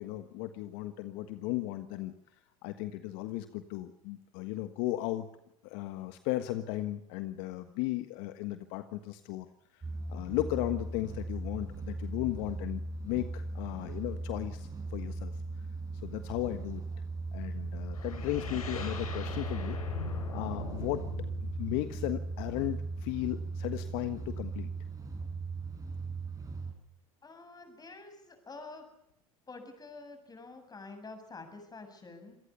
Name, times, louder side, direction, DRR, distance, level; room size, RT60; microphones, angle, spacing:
voice 1, 0.0-2.1 2.6-5.3 5.6-9.5 10.1-15.3 16.0-16.8 17.3-19.8 20.3-21.0 21.4-24.7, left 16 dB, 60° left, 10 dB, 1.5 m, -35 dB
sound 1, 9.8-26.7, right 3 dB, 20° right, 7.0 m, -38 dB
sound 2, 17.9-22.8, left 6 dB, 85° left, 6.1 m, -41 dB
voice 2, 27.2-28.9 29.5-32.4, left 3 dB, 20° left, 8 dB, 7.1 m, -48 dB
26.5 x 18.5 x 7.0 m, 0.80 s
hypercardioid pair, 85°, 18 cm